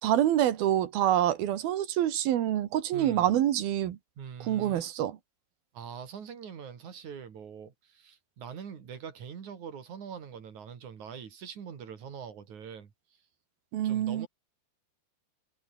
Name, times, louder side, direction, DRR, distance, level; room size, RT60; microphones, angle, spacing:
voice 1, 0.0-4.0 4.4-5.2 13.7-14.3, right 12 dB, 80° right, 3.4 m, -26 dB
voice 2, 2.9-3.3 4.2-4.8 5.7-12.9 13.8-14.3, right 7 dB, 55° right, 4.0 m, -43 dB
omnidirectional pair, 4.4 m